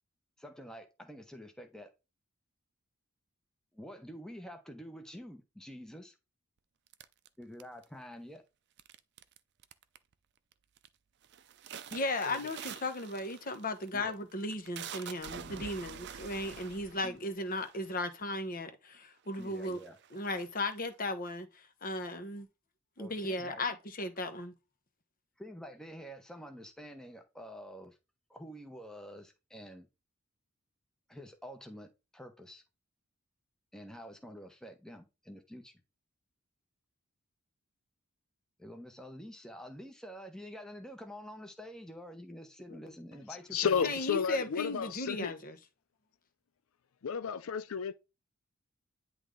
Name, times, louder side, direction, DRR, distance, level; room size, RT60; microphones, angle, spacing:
voice 1, 0.4-1.9 3.7-6.2 7.4-8.4 12.2-12.4 13.9-14.1 17.0-17.2 19.4-20.0 23.0-23.6 25.4-28.0 28.3-29.9 31.1-32.6 33.7-35.7 38.6-43.9, equal, 5° left, 1.0 m, -48 dB
sound 1, 6.9-8.0 8.8-9.4 9.6-10.1 10.5-10.9 11.2-18.3 18.9-19.0 19.3-20.9, right 8 dB, 50° right, 0.5 m, -47 dB
voice 2, 11.9-19.8 20.1-22.5 23.0-24.5 42.7-42.9 43.8-45.6, left 2 dB, 40° left, 1.1 m, -36 dB
voice 3, 43.5-45.3 47.0-47.9, left 7 dB, 70° left, 0.4 m, -32 dB
9.9 x 3.3 x 3.8 m
head